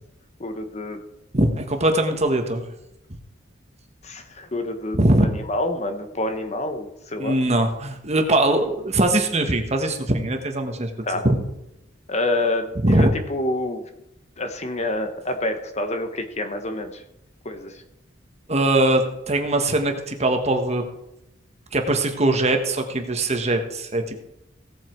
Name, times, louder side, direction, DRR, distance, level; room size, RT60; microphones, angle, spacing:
voice 1, 0.4-1.0 4.0-5.0 5.5-7.4 11.1-11.3 12.1-13.9 14.4-17.0 17.4-17.8, left 1 dB, 35° left, 7 dB, 1.2 m, -27 dB
voice 2, 1.3-2.6 4.9-5.2 7.2-10.9 11.2-11.4 12.8-13.1 18.5-20.8 21.7-24.2, right 1 dB, 35° right, 5 dB, 1.5 m, -21 dB
17.0 x 7.9 x 4.6 m, 0.87 s
head